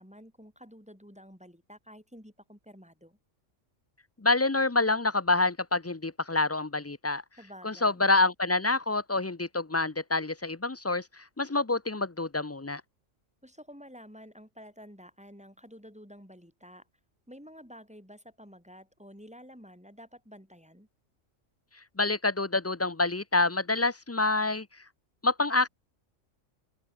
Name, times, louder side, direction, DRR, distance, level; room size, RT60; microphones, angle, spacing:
voice 1, 0.0-3.2 7.4-8.1 13.4-16.9 17.3-20.9, equal, 5° right, 5.7 m, -50 dB
voice 2, 4.2-7.2 7.6-12.8 22.0-24.7 25.2-25.7, left 2 dB, 20° left, 0.4 m, -27 dB
open air
omnidirectional pair, 1.3 m